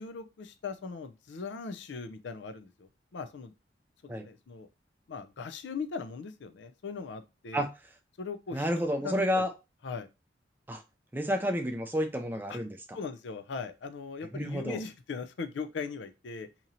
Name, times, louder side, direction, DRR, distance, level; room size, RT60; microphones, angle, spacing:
voice 1, 0.0-3.5 4.0-4.7 5.1-7.7 8.2-8.7 9.0-9.4 9.8-10.1 12.5-12.6 12.9-16.5, left 4 dB, 75° left, 10 dB, 0.5 m, -39 dB
voice 2, 8.5-9.5 10.7-10.8 11.1-13.0 14.3-14.8, equal, 10° right, 5 dB, 0.5 m, -30 dB
2.9 x 2.6 x 4.1 m, 0.26 s
head